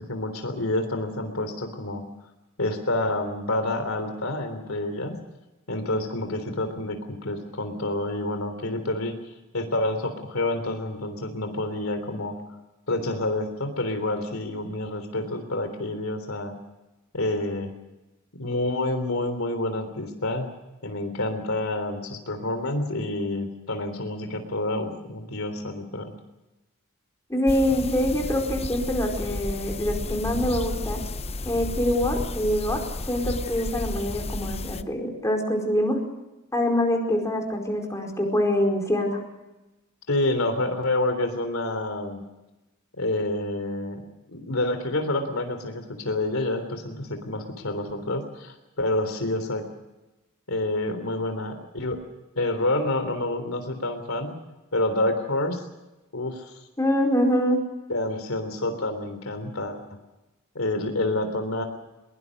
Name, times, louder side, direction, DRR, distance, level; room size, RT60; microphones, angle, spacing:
voice 1, 0.0-2.0 2.6-5.2 5.7-9.1 9.5-12.4 12.9-16.5 17.1-17.7 18.3-20.5 20.8-26.1 40.1-42.2 43.0-44.0 44.3-49.6 50.5-52.0 52.4-54.3 54.7-55.6 56.1-56.5 57.9-59.8 60.6-61.6, left 2 dB, 70° left, 8 dB, 3.5 m, -28 dB
voice 2, 27.3-31.0 31.4-32.8 33.1-36.0 36.5-39.2 56.8-57.6, left 1 dB, 15° left, 1 dB, 4.7 m, -24 dB
sound 1, 27.5-34.8, left 2 dB, 30° left, 0.9 m, -32 dB
23.0 x 22.5 x 6.6 m, 1.0 s
head